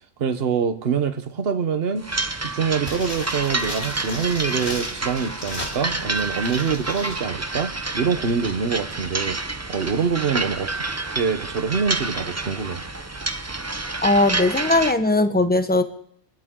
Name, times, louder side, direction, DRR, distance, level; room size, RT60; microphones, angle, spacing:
voice 1, 0.2-2.0 2.4-9.4 9.7-10.8 11.1-12.8, right 6 dB, 60° right, 9 dB, 1.3 m, -25 dB
sound 1, 2.0-14.9, right 2 dB, 15° right, 0.6 m, -29 dB
sound 2, 2.8-7.2 7.5-7.6, left 1 dB, 65° left, 4.5 m, -35 dB
voice 2, 14.0-15.8, left 2 dB, 10° left, 8 dB, 1.0 m, -19 dB
28.5 x 12.5 x 3.9 m, 0.68 s
omnidirectional pair, 1.2 m